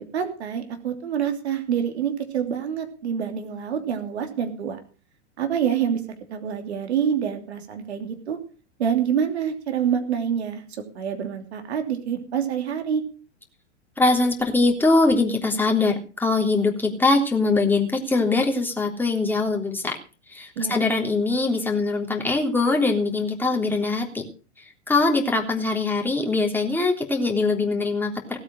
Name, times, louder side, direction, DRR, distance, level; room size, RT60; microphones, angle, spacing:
voice 1, 0.1-4.8 5.4-6.0 6.3-8.4 8.8-10.6 10.9-13.0 20.6-20.8, right 8 dB, 65° right, 6 dB, 3.0 m, -26 dB
voice 2, 14.0-20.0 20.3-24.2 24.9-28.4, left 3 dB, 5° left, 1 dB, 3.4 m, -22 dB
17.5 x 8.5 x 6.4 m, 0.37 s
figure-of-eight pair, 95°, 36 cm